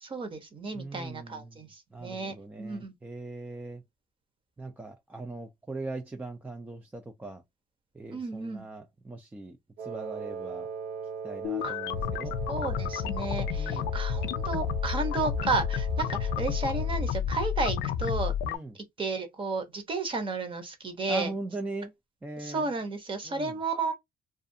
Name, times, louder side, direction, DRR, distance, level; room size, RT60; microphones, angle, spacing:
voice 1, 0.0-1.7 2.0-2.9 8.1-8.6 11.6-11.7 12.5-18.3 19.0-21.3 22.4-23.9, right 3 dB, 30° right, 0.9 m, -32 dB
voice 2, 0.7-1.6 1.9-3.8 4.6-7.4 7.9-10.7 11.2-12.3 13.5-13.9 18.4-18.8 21.1-21.9 22.2-22.7 23.2-23.6, right 2 dB, 10° right, 0.4 m, -40 dB
Wind instrument woodwind instrument, 9.8-17.1, right 6 dB, 75° right, 0.6 m, -40 dB
sound 1, 11.4-18.6, left 7 dB, 80° left, 0.4 m, -30 dB
2.4 x 2.4 x 2.6 m
cardioid pair, 110°, 17 cm